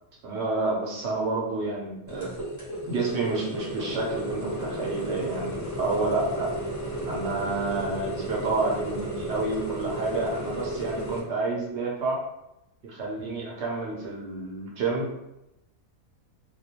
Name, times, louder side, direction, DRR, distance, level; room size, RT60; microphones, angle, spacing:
voice 1, 0.2-2.3 2.8-6.5 7.1-12.3 12.8-15.1, right 3 dB, 60° right, -3 dB, 0.8 m, -29 dB
sound 1, 2.1-11.2, right 1 dB, 25° left, 0.4 m, -33 dB
2.3 x 2.2 x 2.8 m, 0.87 s
omnidirectional pair, 1.5 m